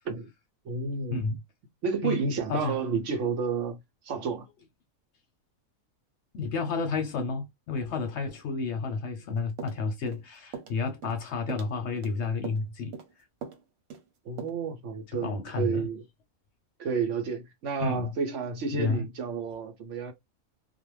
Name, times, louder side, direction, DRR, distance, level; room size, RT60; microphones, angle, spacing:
voice 1, 0.6-1.2 1.8-3.8 4.0-4.5 14.3-16.0 16.8-20.1, right 5 dB, 65° right, 0.9 m, -31 dB
voice 2, 6.3-13.0 15.2-15.9 17.8-18.1 18.7-19.0, left 4 dB, 60° left, 0.8 m, -31 dB
sound 1, 9.6-10.2 10.5-10.8 11.0-11.2 11.5-12.1 12.4-12.7 12.9-13.1 13.4-13.6 13.9-14.1 14.4-14.5, right 6 dB, 80° right, 1.2 m, -41 dB
2.4 x 2.2 x 3.0 m
omnidirectional pair, 1.5 m